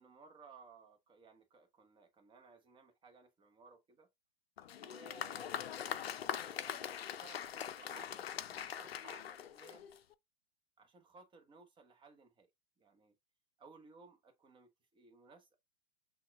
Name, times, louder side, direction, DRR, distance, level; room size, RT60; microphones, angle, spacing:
voice 1, 0.0-4.1 4.8-9.9 10.8-12.5 12.8-13.1 13.6-15.6, right 4 dB, 15° right, 0.9 m, -60 dB
Applause, 4.6-10.1, left 9 dB, 80° left, 0.5 m, -42 dB
5.8 x 2.3 x 2.3 m
hypercardioid pair, 110°, 30 cm